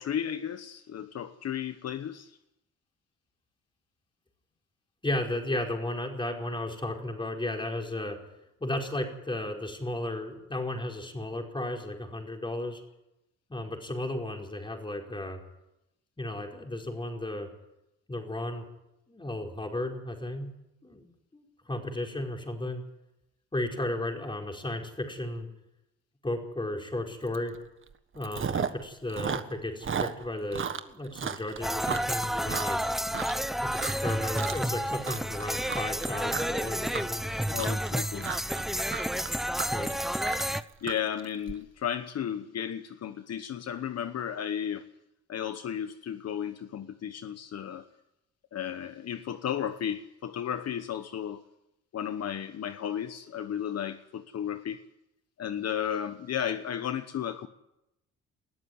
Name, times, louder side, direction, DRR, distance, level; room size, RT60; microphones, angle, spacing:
voice 1, 0.0-2.4 37.5-38.3 40.8-44.8 45.3-47.8 48.5-51.4 51.9-54.8 55.4-57.5, left 9 dB, 55° left, 10 dB, 1.1 m, -34 dB
voice 2, 5.0-8.2 8.6-12.8 13.5-15.4 16.2-17.5 18.1-18.6 19.1-20.5 20.8-21.1 21.3-22.8 23.5-25.5 26.2-27.5 28.1-32.8 33.6-37.3 39.7-39.9, left 1 dB, 15° left, 2 dB, 4.9 m, -34 dB
Chewing mastication, 27.3-27.6 27.9-28.8 29.1-33.5 33.7-34.1 34.4-34.8 35.0-41.5, right 6 dB, 40° right, 1.5 m, -34 dB
sound 1, 31.6-40.6, equal, ahead, 0.8 m, -30 dB
20.5 x 14.0 x 9.7 m, 0.87 s
cardioid pair, 90°, 30 cm